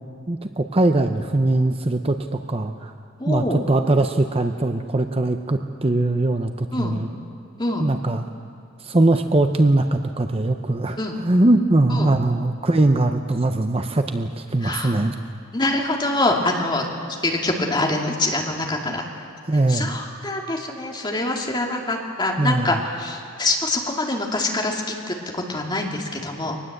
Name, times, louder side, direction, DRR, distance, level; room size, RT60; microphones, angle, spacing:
voice 1, 0.3-2.9 3.3-7.1 7.8-8.2 8.8-15.1 18.9-19.0 19.5-20.0 22.4-22.8, right 2 dB, 30° right, 6 dB, 0.7 m, -21 dB
voice 2, 3.2-3.6 6.7-7.0 7.6-7.8 11.0-11.1 11.9-12.1 14.6-15.0 15.5-16.9 17.2-19.1 19.7-26.6, left 2 dB, 20° left, 0 dB, 2.4 m, -25 dB
23.5 x 19.5 x 7.9 m, 2.3 s
head